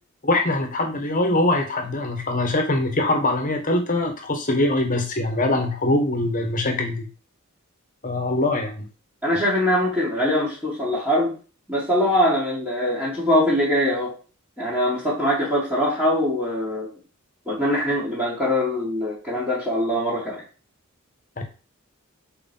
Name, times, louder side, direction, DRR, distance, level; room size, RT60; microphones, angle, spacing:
voice 1, 0.2-7.1 8.0-8.9 21.4-21.5, left 2 dB, 40° left, 4 dB, 1.3 m, -23 dB
voice 2, 9.2-11.3 11.7-14.1 14.6-16.9 17.5-20.4, left 1 dB, 5° right, -9 dB, 2.4 m, -22 dB
5.0 x 4.5 x 5.4 m, 0.35 s
head